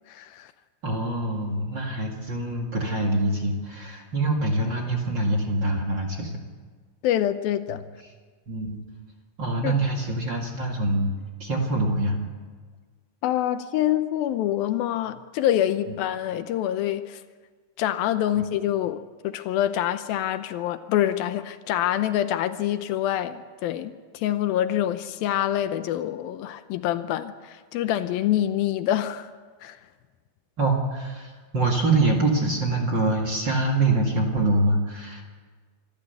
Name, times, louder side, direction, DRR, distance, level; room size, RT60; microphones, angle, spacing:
voice 1, 0.1-0.5 7.0-7.8 9.6-9.7 13.2-17.2 17.8-29.3 29.6-29.8, left 12 dB, 80° left, 11 dB, 2.5 m, -26 dB
voice 2, 0.8-6.3 8.5-8.8 9.4-11.1 11.4-12.2 15.9-16.0 18.3-18.5 30.6-35.2, right 2 dB, 35° right, 1 dB, 2.3 m, -25 dB
25.5 x 14.0 x 8.1 m, 1.5 s
omnidirectional pair, 4.4 m